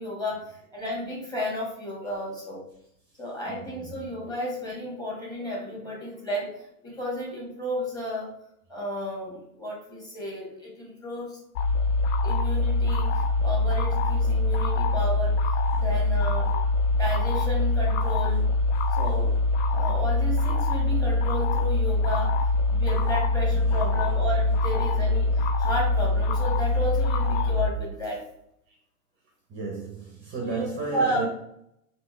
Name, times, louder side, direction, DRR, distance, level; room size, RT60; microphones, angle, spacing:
voice 1, 0.0-2.6 3.2-8.3 8.7-11.4 12.2-15.4 15.7-16.5 16.9-18.4 18.9-19.3 19.7-22.3 22.7-25.3 25.6-28.2 30.4-30.6 30.9-31.3, equal, 10° left, -4 dB, 1.5 m, -32 dB
voice 2, 3.4-4.3 23.5-24.1 27.3-27.4 27.8-27.9 29.5-31.3, right 4 dB, 25° right, 1 dB, 0.6 m, -35 dB
sound 1, 11.6-27.7, left 2 dB, 50° left, 0.6 m, -24 dB
3.4 x 2.9 x 4.4 m, 0.78 s
hypercardioid pair, 120°, 47 cm